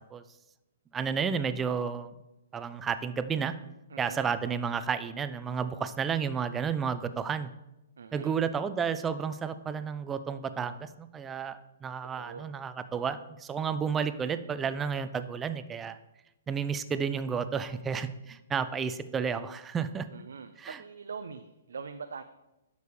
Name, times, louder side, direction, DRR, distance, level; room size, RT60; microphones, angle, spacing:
voice 1, 0.9-2.1 2.5-3.5 4.0-7.5 8.1-16.0 16.5-20.1 20.6-20.8, right 6 dB, 15° right, 12 dB, 0.5 m, -32 dB
voice 2, 3.9-4.3 8.0-8.4 12.2-12.5 20.1-22.2, right 5 dB, 75° right, 8 dB, 0.5 m, -43 dB
10.5 x 6.8 x 3.2 m, 0.94 s
hypercardioid pair, 125°, 0 cm